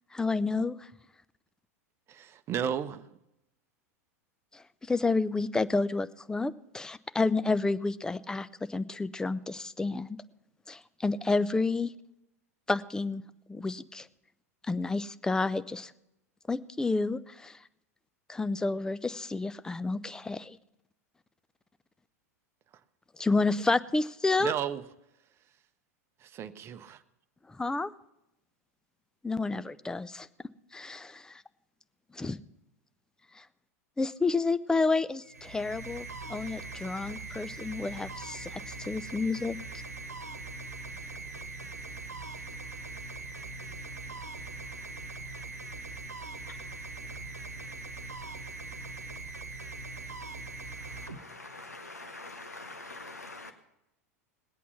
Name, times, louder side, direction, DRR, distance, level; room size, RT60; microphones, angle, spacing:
voice 1, 0.1-0.9 4.5-10.2 10.7-11.9 12.7-13.2 13.5-14.1 14.6-15.9 16.5-17.6 18.3-20.6 23.2-24.5 27.5-27.9 29.2-30.3 30.7-31.4 32.1-32.4 33.3-33.4 34.0-39.6, left 3 dB, 10° left, 15 dB, 0.5 m, -30 dB
voice 2, 2.1-3.0 24.4-24.8 26.2-27.0, right 9 dB, 30° right, 12 dB, 0.8 m, -33 dB
sound 1, 35.2-51.8, right 3 dB, 85° right, 1.1 m, -41 dB
voice 3, 50.9-53.5, left 2 dB, 85° left, 6 dB, 0.9 m, -45 dB
20.0 x 8.5 x 5.7 m, 0.87 s
figure-of-eight pair, 90°, 8 cm